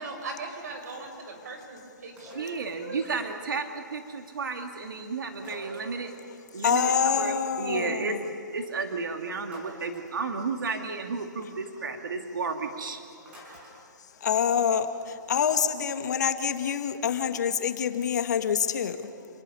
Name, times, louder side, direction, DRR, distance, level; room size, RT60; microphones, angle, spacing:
voice 1, 0.0-3.1, right 3 dB, 55° right, 3 dB, 5.8 m, -39 dB
sound 1, 2.2-2.7 5.4-6.2 9.5-10.2 13.3-13.8, equal, 10° right, 5.3 m, -47 dB
voice 2, 2.3-6.1 6.5-8.3 8.5-13.0, right 4 dB, 85° right, 4 dB, 2.3 m, -32 dB
voice 3, 6.6-8.2 14.2-19.1, left 7 dB, 60° left, 8 dB, 1.6 m, -26 dB
27.5 x 20.0 x 5.6 m, 2.5 s
hypercardioid pair, 160°, 11 cm